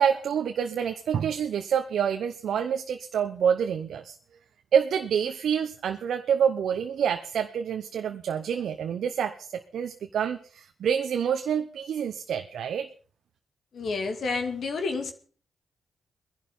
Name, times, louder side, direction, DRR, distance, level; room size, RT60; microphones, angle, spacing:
voice 1, 0.0-4.2 4.7-12.9, right 8 dB, 75° right, 1.0 m, -27 dB
voice 2, 13.7-15.1, left 4 dB, 65° left, 2.4 m, -29 dB
20.0 x 11.0 x 5.5 m
hypercardioid pair, 40°, 0 cm